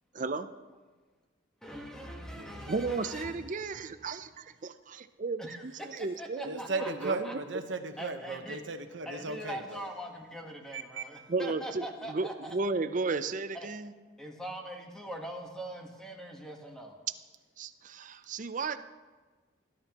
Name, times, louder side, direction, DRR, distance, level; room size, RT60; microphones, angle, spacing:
voice 1, 0.1-0.5 2.7-7.4 11.3-13.9 17.6-18.8, right 3 dB, 40° right, 10 dB, 0.5 m, -34 dB
voice 2, 1.6-3.7 5.4-5.9 6.2-7.3 8.0-8.6 9.0-12.5 13.5-13.7 14.2-17.0, equal, 5° left, 1 dB, 1.2 m, -42 dB
voice 3, 2.3-2.7 6.4-9.9 10.7-11.1, right 3 dB, 70° right, 7 dB, 1.0 m, -37 dB
19.0 x 11.0 x 2.9 m, 1.4 s
head